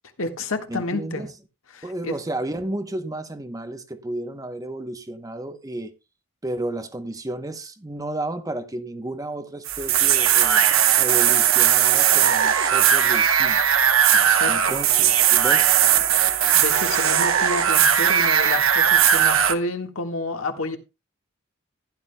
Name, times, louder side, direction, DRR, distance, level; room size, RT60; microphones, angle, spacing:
voice 1, 0.2-1.2 1.7-2.1 14.3-14.7 16.5-20.8, left 2 dB, 75° left, 1.5 m, -29 dB
voice 2, 0.7-1.3 1.8-5.9 6.4-10.7 11.0-13.8 14.5-15.8, right 1 dB, 15° right, 0.8 m, -32 dB
sound 1, 9.7-19.5, right 9 dB, 70° right, 1.0 m, -18 dB
15.0 x 11.0 x 2.2 m
head